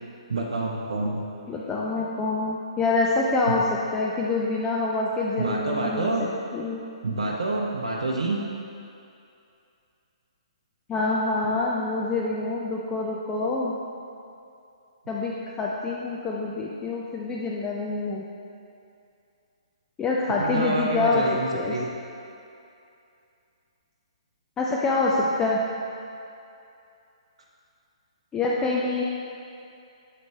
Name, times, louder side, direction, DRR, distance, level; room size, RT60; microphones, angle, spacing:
voice 1, 0.3-1.3 3.5-3.6 5.4-6.3 7.0-8.4 20.4-21.9, right 2 dB, 65° right, -2 dB, 0.7 m, -27 dB
voice 2, 1.5-6.1 6.5-6.8 10.9-13.8 15.1-18.2 20.0-21.2 21.5-21.8 24.6-25.6 28.3-29.0, left 3 dB, 15° left, -4 dB, 0.4 m, -26 dB
7.5 x 5.1 x 3.3 m, 2.6 s
figure-of-eight pair, 130°, 3 cm